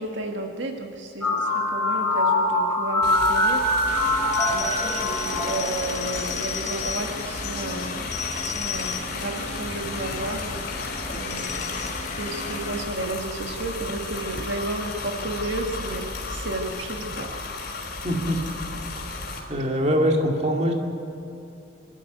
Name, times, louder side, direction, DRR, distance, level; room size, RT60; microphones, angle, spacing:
voice 1, 0.0-3.7 4.1-10.8 11.1-11.8 12.2-17.3 17.5-18.0, right 2 dB, 75° right, 3 dB, 1.6 m, -33 dB
sound 1, 1.2-6.3, left 1 dB, 5° left, 3.2 m, -23 dB
sound 2, 3.0-19.4, left 3 dB, 55° left, 3.8 m, -34 dB
sound 3, 3.9-12.9, left 5 dB, 40° left, 1.4 m, -33 dB
voice 2, 18.0-18.4 19.5-20.7, equal, 35° right, 1 dB, 2.2 m, -23 dB
25.0 x 13.0 x 8.2 m, 2.9 s
head